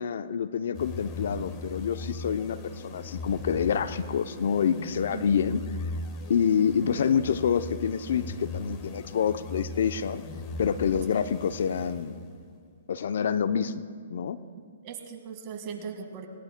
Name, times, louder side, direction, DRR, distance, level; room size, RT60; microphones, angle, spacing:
voice 1, 0.0-5.6 6.3-10.2 10.6-12.2 12.9-13.7 14.1-14.4, left 7 dB, 65° left, 12 dB, 0.6 m, -27 dB
sound 1, 0.7-12.5, left 2 dB, 30° left, 1.3 m, -39 dB
voice 2, 10.9-11.2 14.8-16.3, right 7 dB, 35° right, 4 dB, 1.7 m, -39 dB
20.0 x 18.0 x 2.2 m, 2.2 s
hypercardioid pair, 135°, 0 cm